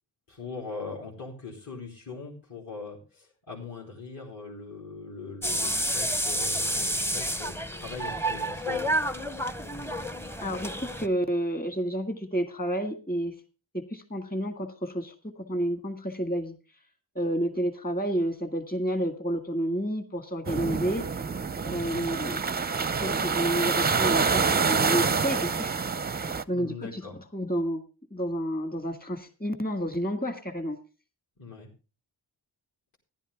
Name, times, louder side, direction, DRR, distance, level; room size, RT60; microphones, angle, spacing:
voice 1, 0.3-8.9 21.6-22.0 26.5-27.2 31.4-31.7, left 4 dB, 55° left, -5 dB, 3.7 m, -41 dB
sound 1, 5.4-11.1, right 1 dB, 5° left, 0.7 m, -30 dB
voice 2, 10.4-13.3 13.7-16.5 17.2-21.1 21.6-22.6 23.0-25.8 26.1-27.0 27.3-27.8 28.1-30.8, equal, 20° left, 7 dB, 1.9 m, -30 dB
sound 2, 20.4-26.4, right 5 dB, 25° right, 0.5 m, -27 dB
14.5 x 11.5 x 3.5 m, 0.33 s
wide cardioid pair, 115°, 42 cm